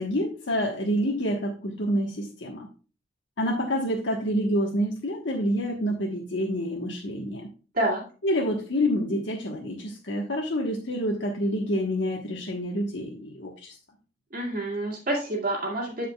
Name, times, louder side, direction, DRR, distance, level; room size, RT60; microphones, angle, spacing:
voice 1, 0.0-2.7 3.4-7.5 8.2-13.8, equal, 70° left, 0 dB, 1.3 m, -27 dB
voice 2, 14.3-16.1, right 1 dB, 50° right, -3 dB, 2.3 m, -28 dB
13.5 x 5.0 x 2.3 m, 0.36 s
head